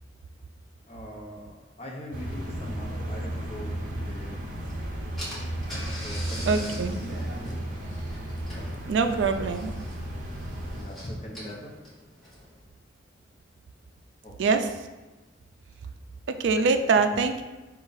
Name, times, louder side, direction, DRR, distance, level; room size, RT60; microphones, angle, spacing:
voice 1, 0.9-4.3 6.0-6.6 7.0-7.6 10.7-11.7 14.2-14.5, equal, 35° left, -2 dB, 0.8 m, -41 dB
sound 1, 2.1-10.8, right 1 dB, 45° right, 0.7 m, -34 dB
Car / Engine, 4.7-4.8 5.2-12.6, equal, ahead, 0.9 m, -42 dB
voice 2, 6.5-7.0 8.9-9.7 14.4-14.9 16.3-17.4, right 4 dB, 70° right, 8 dB, 0.3 m, -24 dB
4.9 x 2.3 x 3.9 m, 1.2 s
head